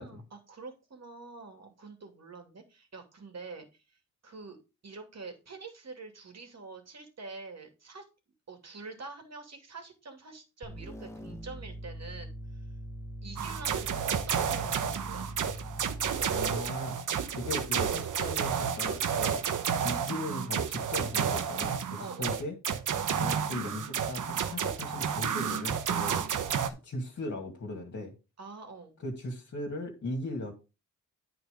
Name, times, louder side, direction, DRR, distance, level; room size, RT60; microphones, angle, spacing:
voice 1, 0.0-3.8 4.2-4.6 4.8-8.0 8.5-12.6 13.2-15.3 22.0-22.5 26.1-26.3 28.4-29.0, right 3 dB, 50° right, 4 dB, 2.7 m, -46 dB
sound 1, 10.6-16.8, right 1 dB, 10° left, 1.5 m, -42 dB
sound 2, 13.4-26.7, right 7 dB, 70° right, 1.0 m, -31 dB
voice 2, 16.3-17.0 17.4-19.4 19.8-21.8 22.2-22.6 23.2-26.2 26.8-28.1 29.0-30.5, left 2 dB, 55° left, 1 dB, 2.4 m, -37 dB
9.3 x 4.6 x 5.2 m, 0.29 s
cardioid pair, 80°, 33 cm